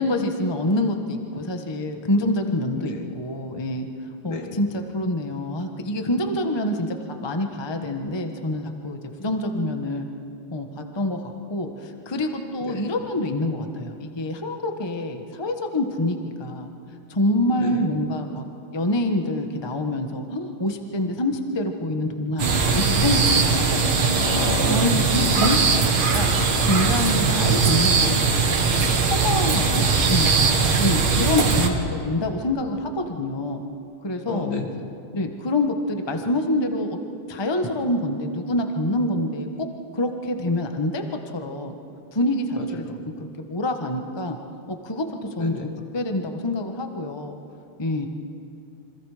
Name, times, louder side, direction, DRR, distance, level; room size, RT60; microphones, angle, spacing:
voice 1, 0.0-3.9 4.2-10.1 10.5-16.7 17.1-18.4 18.7-24.3 24.7-26.3 26.6-28.5 28.8-30.3 30.8-33.6 34.0-34.5 35.1-37.0 37.3-39.7 39.9-41.7 42.1-42.9 43.2-44.4 44.7-45.1 45.4-47.4 47.8-48.1, left 1 dB, 15° left, 5 dB, 1.1 m, -26 dB
voice 2, 2.8-3.2 4.2-4.6 12.6-12.9 17.6-17.9 24.1-24.8 25.1-25.5 34.3-34.7 42.6-43.0 45.4-45.8, left 4 dB, 65° left, 2 dB, 2.9 m, -32 dB
sound 1, 22.4-31.7, right 5 dB, 85° right, 2.6 m, -20 dB
28.0 x 26.0 x 5.0 m, 2.7 s
omnidirectional pair, 2.2 m